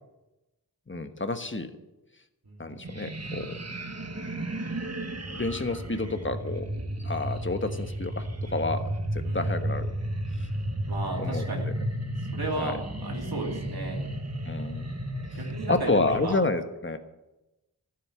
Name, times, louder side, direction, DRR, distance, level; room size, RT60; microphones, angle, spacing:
voice 1, 0.9-1.7 2.6-3.6 5.3-6.7 7.0-9.9 10.4-10.5 11.2-11.5 12.6-12.7 14.4-15.0 15.7-17.0, left 3 dB, 30° left, 8 dB, 1.3 m, -29 dB
voice 2, 2.4-2.8 9.2-9.7 10.5-10.6 10.9-11.7 12.3-14.1 15.3-16.4, right 2 dB, 70° right, 0 dB, 2.5 m, -35 dB
sound 1, 2.8-16.3, right 1 dB, 40° right, 1.5 m, -33 dB
14.0 x 7.9 x 8.5 m, 0.99 s
wide cardioid pair, 65°, 38 cm